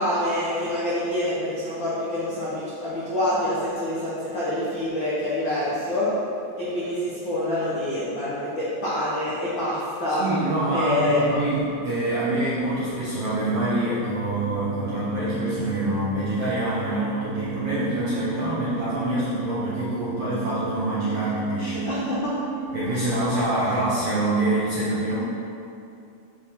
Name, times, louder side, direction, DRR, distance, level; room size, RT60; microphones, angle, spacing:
voice 1, 0.0-6.1 6.6-10.3 10.7-11.3 21.7-22.4, left 1 dB, 70° left, -9 dB, 1.1 m, -26 dB
voice 2, 10.2-21.9 22.7-25.2, right 1 dB, 65° right, -9 dB, 1.6 m, -25 dB
sound 1, 11.1-23.4, right 6 dB, 80° right, 2.1 m, -38 dB
10.0 x 4.8 x 3.7 m, 2.6 s
omnidirectional pair, 4.2 m